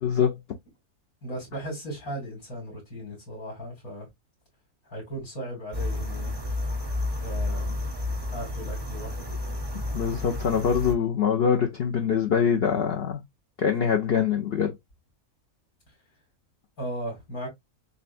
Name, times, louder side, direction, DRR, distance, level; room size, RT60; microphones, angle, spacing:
voice 1, 0.0-0.4 9.9-13.2 13.6-14.8, left 7 dB, 55° left, 0.7 m, -24 dB
voice 2, 1.2-4.1 4.9-6.3 7.2-7.8 8.3-9.4 16.8-17.5, right 1 dB, 75° left, 2.9 m, -36 dB
sound 1, 5.7-10.9, left 2 dB, 25° right, 0.6 m, -31 dB
6.6 x 2.3 x 2.5 m
omnidirectional pair, 1.5 m